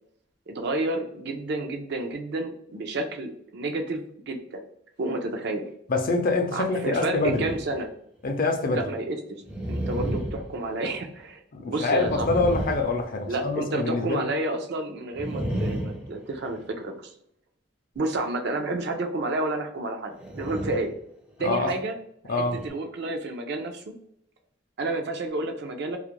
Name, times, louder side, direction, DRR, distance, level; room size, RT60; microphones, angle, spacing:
voice 1, 0.5-4.6 5.0-5.7 6.5-7.9 8.7-9.4 9.7-11.4 11.7-12.3 13.3-16.9 18.0-20.9 21.4-22.0 22.3-23.8 24.8-26.0, right 2 dB, 60° right, 0.5 m, -30 dB
voice 2, 5.9-7.5 8.2-8.8 11.5-14.3 21.4-21.7 22.3-22.6, left 3 dB, 50° left, 0.5 m, -25 dB
sound 1, 7.1-7.9 8.3-8.4 9.4-11.3 11.9-13.6 15.1-16.8 20.1-21.0 21.4-21.6 22.3-22.7, right 1 dB, 5° right, 0.4 m, -33 dB
2.3 x 2.1 x 2.9 m
head